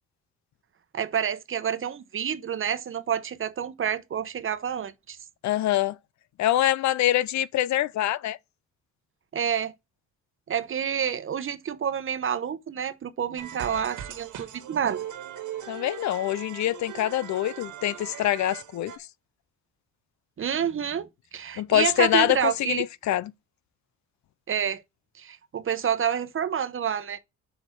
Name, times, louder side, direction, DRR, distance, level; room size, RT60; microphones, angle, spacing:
voice 1, 0.9-5.2 9.3-9.7 10.5-15.0 20.4-22.8 24.5-24.8 25.2-27.2, right 8 dB, 45° right, 0.9 m, -28 dB
voice 2, 5.4-6.0 6.4-8.4 15.7-18.9 21.6-23.3, left 13 dB, 65° left, 0.6 m, -25 dB
sound 1, 13.4-19.0, right 10 dB, 85° right, 1.8 m, -39 dB
6.4 x 5.1 x 6.0 m
cardioid pair, 90°, 30 cm